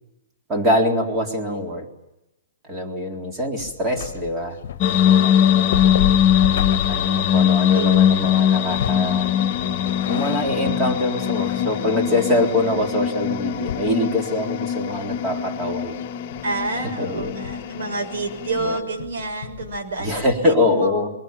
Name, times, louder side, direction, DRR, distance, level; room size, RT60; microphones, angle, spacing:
voice 1, 0.5-1.9 2.7-4.6 5.2-5.8 6.9-9.3 10.1-16.0 17.0-17.3 18.6-18.8 20.0-21.1, left 1 dB, 15° right, 2 dB, 3.8 m, -24 dB
sound 1, 3.6-14.5 14.8-15.4 15.7-20.5, left 10 dB, 50° left, 1.3 m, -33 dB
sound 2, 4.8-18.8, left 9 dB, 35° left, 1.3 m, -21 dB
voice 2, 5.0-5.7 7.7-8.0 16.4-21.1, right 3 dB, 75° right, 5 dB, 6.6 m, -29 dB
23.0 x 21.5 x 9.1 m, 0.90 s
hypercardioid pair, 170°, 0 cm